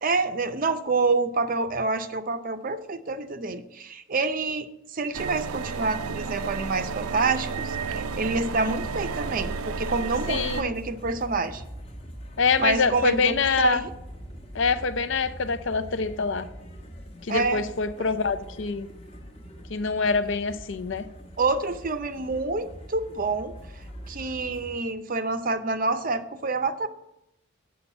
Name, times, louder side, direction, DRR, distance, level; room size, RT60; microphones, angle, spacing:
voice 1, 0.0-4.7 4.9-11.6 12.6-13.9 17.3-17.6 21.4-23.5 24.1-26.9, right 3 dB, 40° right, 10 dB, 0.5 m, -27 dB
sound 1, 5.1-10.6, right 5 dB, 90° right, 0.5 m, -32 dB
sound 2, 7.7-24.8, equal, 30° left, 1.0 m, -43 dB
voice 2, 10.3-10.7 12.4-13.8 14.5-16.5 17.3-18.9 19.7-21.0, left 5 dB, 60° left, 11 dB, 0.6 m, -25 dB
8.2 x 6.3 x 7.0 m, 0.86 s
head